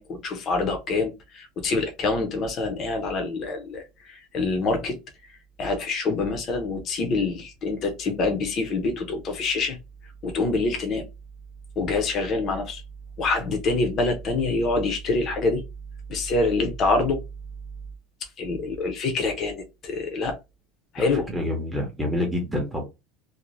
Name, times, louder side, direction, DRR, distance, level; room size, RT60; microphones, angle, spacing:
voice 1, 0.0-5.0 5.6-9.8 10.2-11.1 11.8-12.8 13.2-15.6 16.1-17.2 18.4-20.4 20.9-21.3, left 3 dB, 35° left, 0.6 m, -26 dB
voice 2, 21.3-22.8, left 1 dB, 5° right, 0.7 m, -27 dB
2.5 x 2.1 x 3.0 m
cardioid pair, 160°, 0 cm